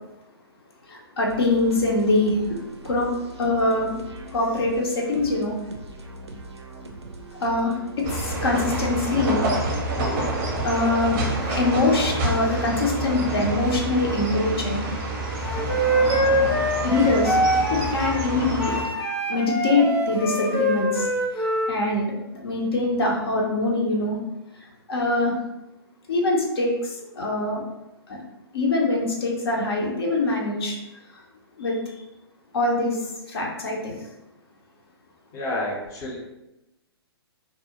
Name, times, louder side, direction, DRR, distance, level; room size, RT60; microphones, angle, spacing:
voice 1, 0.9-3.1 3.4-3.9 4.3-5.6 7.4-7.8 8.1-9.4 10.6-11.2 11.5-14.8 16.0-16.2 16.8-17.4 17.7-18.7 19.3-21.1 21.3-24.2 24.5-25.3 26.1-27.6 28.1-28.2 28.5-30.8 31.1-31.2 31.6-32.0 32.5-34.1, left 2 dB, 65° left, -1 dB, 0.6 m, -24 dB
sound 1, 1.2-11.4, right 1 dB, 85° right, 0.4 m, -41 dB
sound 2, 8.0-18.8, right 2 dB, 30° right, 0.5 m, -28 dB
Wind instrument woodwind instrument, 15.4-18.2 18.6-21.7, right 1 dB, 85° left, 1.3 m, -24 dB
voice 2, 35.3-36.2, left 1 dB, 20° left, -4 dB, 0.5 m, -29 dB
2.3 x 2.0 x 2.8 m, 0.93 s
figure-of-eight pair, 125°, 14 cm